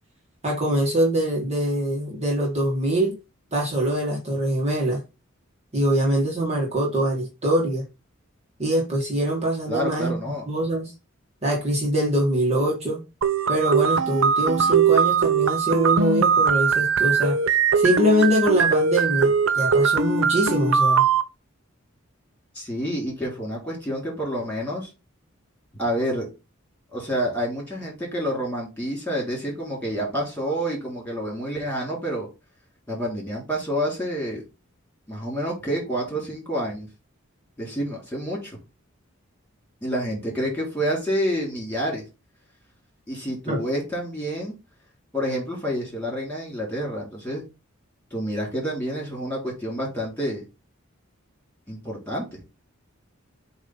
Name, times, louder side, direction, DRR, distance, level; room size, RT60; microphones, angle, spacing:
voice 1, 0.4-3.2 3.5-5.0 5.7-7.8 8.6-10.1 10.5-10.9 11.4-13.0 13.5-17.4 17.7-21.0 43.5-43.6, right 1 dB, 30° right, 1.6 m, -23 dB
voice 2, 9.7-10.4 22.5-24.9 25.7-26.3 26.9-32.3 32.9-34.4 35.1-36.9 37.6-38.6 39.8-42.0 43.1-44.5 45.1-47.4 48.1-50.5 51.7-52.4, equal, 10° left, 3.3 m, -28 dB
sound 1, 13.2-21.2, right 6 dB, 75° right, 0.8 m, -20 dB
8.0 x 2.7 x 5.4 m
head